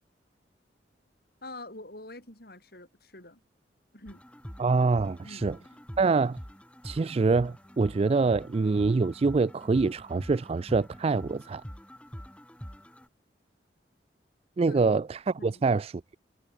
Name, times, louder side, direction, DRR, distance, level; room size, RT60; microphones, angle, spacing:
voice 1, 1.4-3.4 3.9-4.2 5.2-5.8 14.7-14.9 15.4-15.6, left 2 dB, 55° left, 7.3 m, -46 dB
sound 1, 4.1-13.1, equal, 5° left, 4.7 m, -45 dB
voice 2, 4.6-5.6 6.0-6.4 6.8-11.6 14.6-16.2, right 4 dB, 35° right, 0.3 m, -25 dB
head